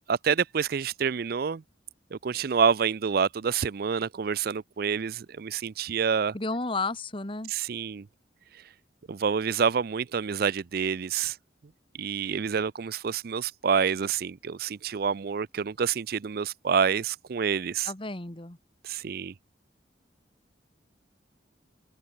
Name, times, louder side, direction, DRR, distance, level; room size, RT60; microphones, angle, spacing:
voice 1, 0.1-1.6 2.1-6.3 7.5-8.1 9.1-11.4 12.0-17.9 18.8-19.3, right 6 dB, 55° right, 0.4 m, -27 dB
voice 2, 6.3-7.5 17.8-18.6, left 3 dB, 30° left, 1.9 m, -32 dB
head